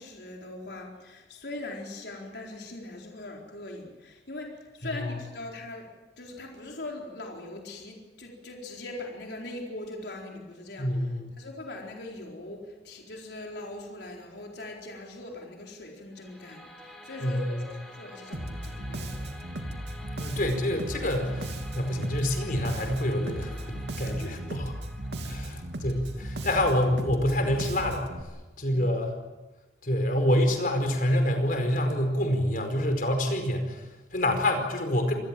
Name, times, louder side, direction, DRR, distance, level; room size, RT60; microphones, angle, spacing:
voice 1, 0.0-5.9 6.2-10.9 11.4-19.2 24.0-24.2 25.2-25.3 28.7-28.9, left 2 dB, 70° left, 0 dB, 4.2 m, -41 dB
voice 2, 10.8-11.3 17.2-17.6 20.2-24.7 25.3-28.1 28.6-29.2 29.8-35.1, left 1 dB, 50° left, 6 dB, 4.9 m, -27 dB
sound 1, 16.1-27.2, equal, ahead, 5.0 m, -49 dB
Bass guitar, 18.3-28.2, right 1 dB, 75° right, 2.8 m, -36 dB
27.5 x 20.5 x 7.7 m, 1.2 s
head